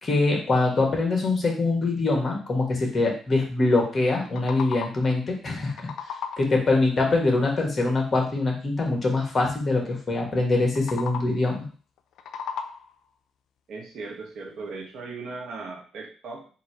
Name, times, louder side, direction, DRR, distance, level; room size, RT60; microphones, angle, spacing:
voice 1, 0.0-5.7 6.4-11.6, left 2 dB, 35° left, 0 dB, 1.7 m, -23 dB
sound 1, 4.1-5.2 5.5-6.7 10.6-11.5 12.0-13.1, left 6 dB, 75° left, 0.4 m, -36 dB
voice 2, 13.7-16.5, right 3 dB, 70° right, 1 dB, 1.3 m, -38 dB
3.8 x 2.9 x 4.6 m, 0.39 s
cardioid pair, 90°, 0 cm